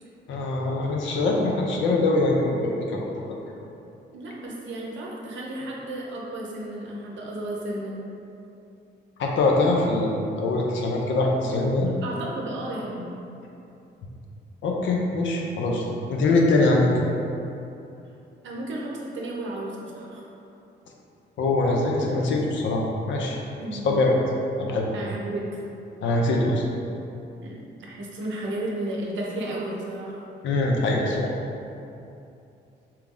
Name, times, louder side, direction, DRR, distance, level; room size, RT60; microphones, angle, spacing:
voice 1, 0.3-3.3 9.2-11.9 14.6-16.9 21.4-23.4 23.7-24.2 24.6-24.9 26.0-26.6 30.4-31.3, left 2 dB, 80° left, -1 dB, 0.5 m, -23 dB
voice 2, 4.1-8.1 12.0-13.1 18.4-20.2 23.6-23.9 24.9-25.5 27.4-30.2, right 1 dB, 80° right, -3 dB, 0.7 m, -33 dB
4.4 x 2.0 x 3.6 m, 2.7 s
cardioid pair, 105°, 19 cm